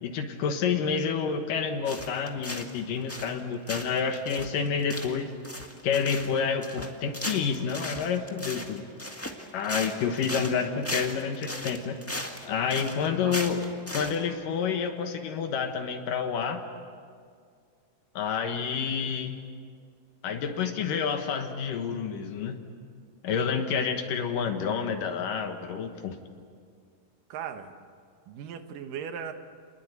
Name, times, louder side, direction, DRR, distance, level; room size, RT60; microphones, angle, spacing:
voice 1, 0.0-5.3 5.8-8.8 9.5-12.0 12.5-13.6 13.9-16.7 18.2-19.4 20.2-22.6 23.2-26.2, left 6 dB, 80° left, 5 dB, 2.9 m, -29 dB
sound 1, 1.8-2.8 3.1-3.4 3.7-14.2, left 1 dB, 10° left, 0.6 m, -37 dB
voice 2, 27.3-27.7 28.3-29.3, right 8 dB, 80° right, 7 dB, 2.9 m, -38 dB
29.0 x 21.0 x 8.2 m, 2.1 s
omnidirectional pair, 3.8 m